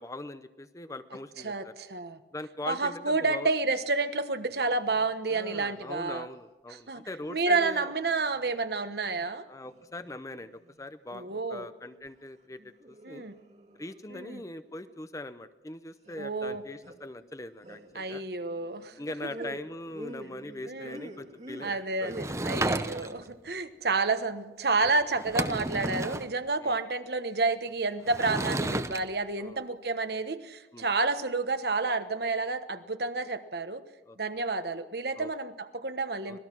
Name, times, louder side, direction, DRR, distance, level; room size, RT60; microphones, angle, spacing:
voice 1, 0.0-1.7 2.3-3.5 5.3-7.9 9.5-10.5 10.8-12.6 12.9-13.2 13.8-18.2 19.0-22.1 23.0-23.1 26.6-26.8 29.4-29.6 30.7-30.9 34.1-34.2 35.2-35.3 36.3-36.4, left 2 dB, 20° left, 12 dB, 0.7 m, -41 dB
voice 2, 1.4-2.2 2.6-6.3 6.7-7.0 7.3-9.5 11.1-11.7 13.0-13.3 14.1-14.4 16.2-16.6 17.9-18.9 19.2-19.3 20.7-21.0 21.6-33.8 34.2-36.4, right 3 dB, 65° right, 10 dB, 1.2 m, -30 dB
sound 1, 4.2-4.3 4.5-5.2 5.5-6.4 7.2-9.3 9.6-10.9 11.2-12.2 12.5-14.9 16.1-16.3 16.8-17.3 17.6-23.0, right 1 dB, 40° right, 1.8 m, -48 dB
Sliding door / Wood, 22.1-23.3 24.8-24.9 25.2-26.3 28.1-29.0, right 2 dB, 15° right, 0.7 m, -32 dB
25.5 x 18.5 x 6.1 m, 1.1 s
head